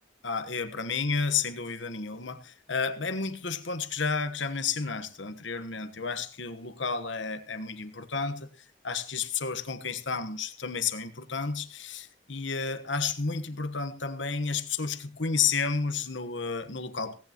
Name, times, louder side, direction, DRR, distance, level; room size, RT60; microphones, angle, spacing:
voice 1, 0.2-8.5 8.8-17.1, left 5 dB, 70° left, 1.3 m, -31 dB
17.5 x 16.5 x 3.1 m
head